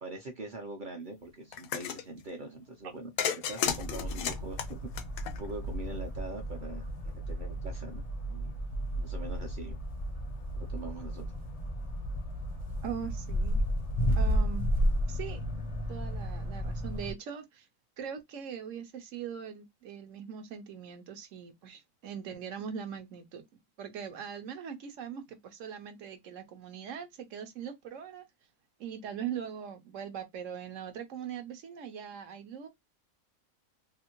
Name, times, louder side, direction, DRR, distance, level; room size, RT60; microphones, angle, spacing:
voice 1, 0.0-4.8 5.4-8.0 8.3-8.5 9.0-9.8 10.6-11.3, right 2 dB, 45° right, 0.7 m, -43 dB
sound 1, 1.5-2.0 3.2-5.7, left 9 dB, 80° left, 1.0 m, -33 dB
sound 2, 3.7-17.1, equal, 40° left, 0.5 m, -33 dB
voice 2, 12.8-13.6 14.2-14.7 15.1-15.4 15.9-17.7 18.0-23.4 23.8-28.3 28.8-32.7, right 8 dB, 65° right, 1.0 m, -41 dB
2.8 x 2.6 x 2.9 m
omnidirectional pair, 1.5 m